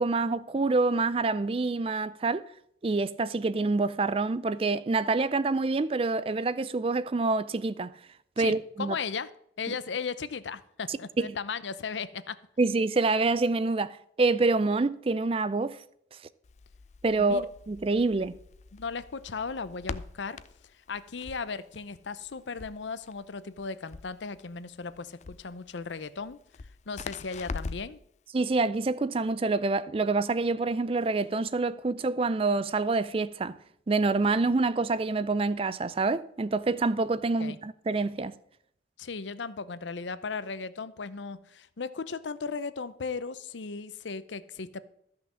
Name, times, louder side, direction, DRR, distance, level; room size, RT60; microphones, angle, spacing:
voice 1, 0.0-2.4 2.8-7.9 8.4-9.0 9.7-9.8 10.9-11.3 12.6-15.8 17.0-18.4 28.3-33.6 33.9-38.3, right 3 dB, 30° right, 0.4 m, -27 dB
voice 2, 8.4-9.3 9.6-12.4 17.2-17.5 18.7-20.4 20.9-26.4 26.9-28.0 37.4-37.6 39.0-44.8, left 5 dB, 80° left, 0.7 m, -36 dB
Crackle, 16.4-28.0, left 4 dB, 40° left, 0.4 m, -43 dB
13.5 x 5.8 x 7.1 m
head